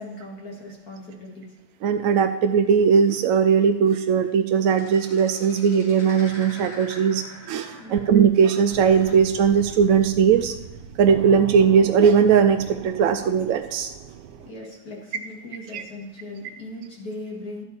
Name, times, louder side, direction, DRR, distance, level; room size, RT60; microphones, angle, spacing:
voice 1, 0.0-1.5 7.8-8.0 14.4-17.6, left 1 dB, 65° left, -1 dB, 2.6 m, -38 dB
voice 2, 1.8-10.5 11.0-13.9 15.7-15.8, right 7 dB, 70° right, 6 dB, 0.8 m, -19 dB
sound 1, 4.7-8.2 8.5-9.2 11.0-11.2, left 1 dB, 85° left, 3.4 m, -44 dB
sound 2, 8.7-14.5, right 7 dB, 85° right, 1.3 m, -39 dB
12.0 x 8.7 x 4.2 m, 1.1 s
omnidirectional pair, 1.8 m